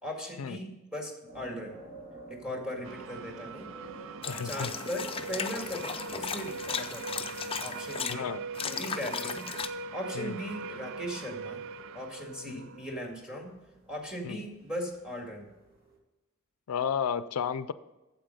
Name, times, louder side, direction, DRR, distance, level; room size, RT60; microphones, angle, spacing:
voice 1, 0.0-1.8 2.3-3.7 4.4-7.3 7.6-8.3 8.6-9.5 9.9-11.6 11.9-13.5 13.9-15.5, equal, 5° right, 1 dB, 2.0 m, -38 dB
sound 1, 1.3-16.0, right 2 dB, 50° right, 3.0 m, -53 dB
sound 2, 2.8-13.4, right 4 dB, 65° right, 0.4 m, -41 dB
sound 3, 4.2-8.1 8.5-9.7, left 6 dB, 25° left, 0.5 m, -36 dB
voice 2, 4.3-4.7 8.1-8.4 10.1-10.3 12.4-12.7 14.2-14.4 16.7-17.7, left 7 dB, 90° left, 14 dB, 0.4 m, -32 dB
8.9 x 7.3 x 5.3 m, 1.1 s
head